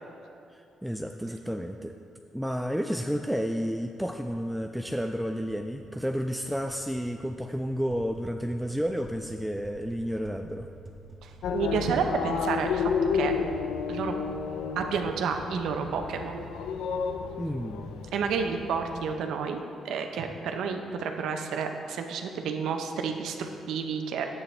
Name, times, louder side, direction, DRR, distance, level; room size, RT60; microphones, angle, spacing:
voice 1, 0.5-2.0 2.3-10.7 17.4-17.9, equal, ahead, 4 dB, 0.3 m, -31 dB
sound 1, 5.5-12.9, right 2 dB, 30° right, 1.4 m, -51 dB
voice 2, 11.2-13.3 13.9-14.1 14.8-16.5 18.1-24.3, right 5 dB, 80° right, 5 dB, 0.7 m, -30 dB
sound 2, 11.4-19.1, left 6 dB, 85° left, 0.4 m, -32 dB
10.5 x 8.5 x 3.3 m, 2.5 s
cardioid pair, 90°, 0 cm